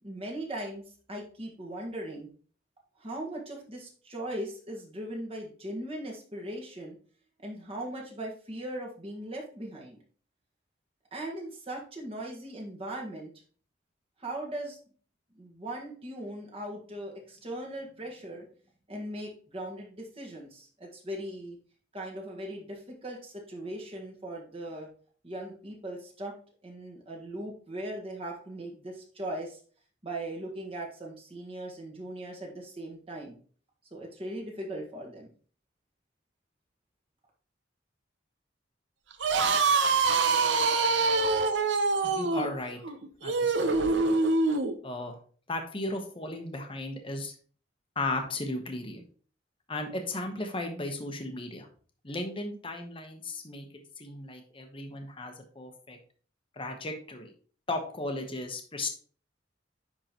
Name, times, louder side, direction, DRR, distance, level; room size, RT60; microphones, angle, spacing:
voice 1, 0.0-2.3 3.0-7.0 7.4-10.0 11.1-13.3 14.2-14.8 15.4-18.5 18.9-21.6 21.9-24.9 25.2-26.3 26.6-29.6 30.0-33.4 33.9-35.3, right 1 dB, 30° right, -1 dB, 1.5 m, -39 dB
sound 1, 39.1-44.7, right 4 dB, 75° right, 0.7 m, -25 dB
voice 2, 42.0-42.8 43.2-44.2 44.8-45.2 45.5-47.3 48.0-49.0 49.7-51.7 52.0-53.7 54.0-56.0 56.6-57.3 57.7-58.9, left 2 dB, 30° left, 4 dB, 1.0 m, -35 dB
10.0 x 3.8 x 3.0 m, 0.43 s
head